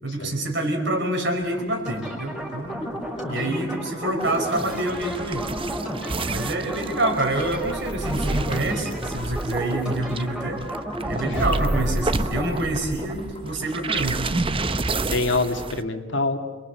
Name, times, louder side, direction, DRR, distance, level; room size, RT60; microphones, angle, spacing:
voice 1, 0.0-2.8 3.3-5.4 6.3-10.6 11.1-14.2, right 1 dB, 65° right, 4 dB, 5.0 m, -27 dB
sound 1, 1.4-14.4, left 1 dB, 25° left, 2.6 m, -45 dB
sound 2, 1.9-12.5, equal, 5° right, 5.2 m, -33 dB
sound 3, 4.2-15.8, right 2 dB, 30° right, 0.8 m, -29 dB
voice 2, 11.2-11.6 15.1-16.4, left 3 dB, 65° left, 5 dB, 2.2 m, -26 dB
28.5 x 22.5 x 8.2 m, 1.3 s
head